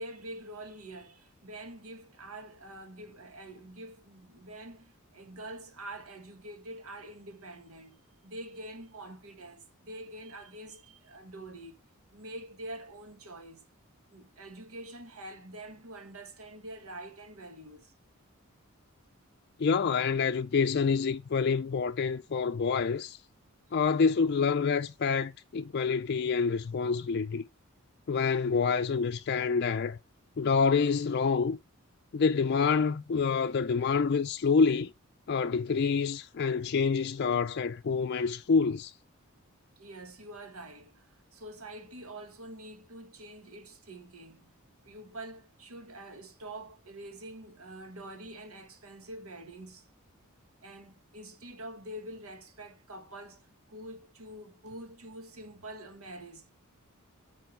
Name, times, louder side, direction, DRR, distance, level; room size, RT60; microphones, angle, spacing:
voice 1, 0.0-11.8 12.1-13.7 14.1-17.9 39.8-44.5 44.9-50.0 50.6-56.5, right 1 dB, 85° right, 1.7 m, -46 dB
voice 2, 19.6-23.2 23.7-27.4 28.1-30.0 30.4-31.6 32.1-34.9 35.3-38.9, left 5 dB, 50° left, 0.4 m, -27 dB
8.2 x 4.4 x 4.6 m
head